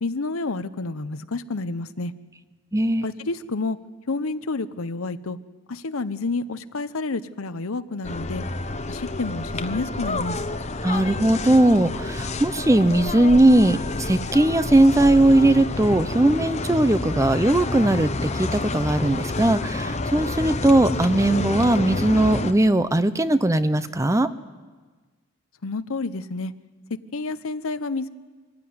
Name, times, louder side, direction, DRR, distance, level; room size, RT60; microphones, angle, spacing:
voice 1, 0.0-2.1 3.0-3.8 4.1-5.4 5.7-8.4 8.9-10.4 25.6-26.5 27.1-28.1, left 3 dB, 80° left, 13 dB, 0.9 m, -29 dB
voice 2, 2.7-3.1 10.8-24.3, right 1 dB, 15° right, 13 dB, 0.6 m, -19 dB
sound 1, 8.0-22.5, left 2 dB, 30° left, 0.9 m, -29 dB
24.0 x 15.5 x 9.5 m, 1.4 s
head